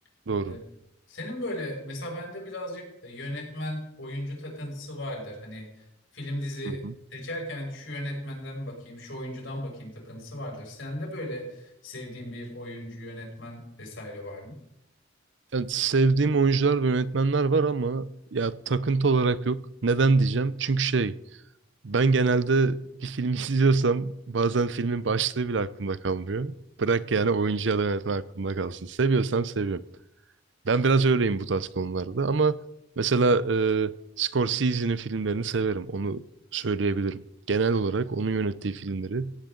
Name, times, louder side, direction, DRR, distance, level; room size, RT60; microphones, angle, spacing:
voice 1, 0.3-0.6 6.6-6.9 15.5-21.1 21.8-29.8 30.6-32.6 33.0-36.2 36.5-39.3, right 4 dB, 65° right, 0.6 m, -25 dB
voice 2, 1.1-5.9 6.1-6.8 7.1-14.6, left 1 dB, 75° left, 6.9 m, -36 dB
18.0 x 16.5 x 3.9 m
head